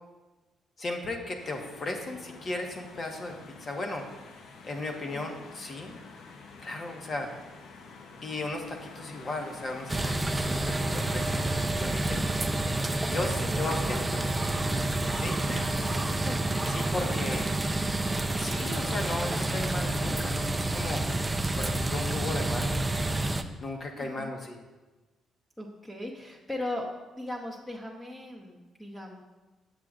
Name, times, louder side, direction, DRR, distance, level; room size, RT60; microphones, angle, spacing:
voice 1, 0.8-3.3 3.6-4.1 4.6-6.0 6.6-7.3 8.2-11.5 11.8-12.2 13.1-14.2 15.1-16.1 16.7-17.5 18.2-21.0 21.6-22.9 23.6-24.6, left 2 dB, 40° left, 2 dB, 1.0 m, -36 dB
sound 1, 1.4-11.7, left 4 dB, 75° left, 0.7 m, -48 dB
voice 2, 5.1-5.4 13.4-14.2 15.5-16.0 16.2-16.4 24.0-24.3 25.6-29.2, left 1 dB, 10° left, -3 dB, 0.9 m, -39 dB
sound 2, 9.9-23.4, right 2 dB, 15° right, 0.4 m, -29 dB
7.5 x 7.4 x 2.4 m, 1.2 s
cardioid pair, 90°, 0 cm